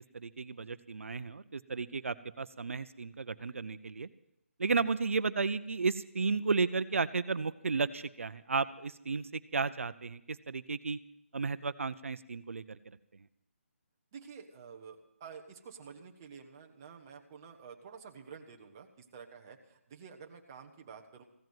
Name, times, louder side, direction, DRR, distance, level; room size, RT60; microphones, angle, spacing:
voice 1, 0.1-4.1 4.6-11.0 11.3-13.0, right 4 dB, 65° right, 14 dB, 0.6 m, -33 dB
voice 2, 14.1-21.2, right 6 dB, 15° right, 1 dB, 0.8 m, -50 dB
15.5 x 7.8 x 9.2 m, 0.81 s
hypercardioid pair, 180°, 8 cm